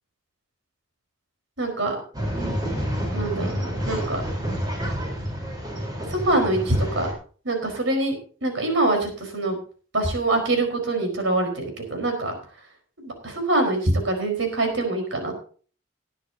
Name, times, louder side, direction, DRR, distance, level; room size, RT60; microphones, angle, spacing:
voice 1, 1.6-2.0 3.1-4.2 6.1-7.1 7.4-8.1 8.4-9.6 9.9-12.3 13.0-15.3, right 2 dB, 75° right, 3 dB, 4.8 m, -24 dB
Male speech man speaking / Chatter / Rattle, 2.1-7.1, equal, 20° right, 4.2 m, -29 dB
19.5 x 10.5 x 2.9 m, 0.41 s
head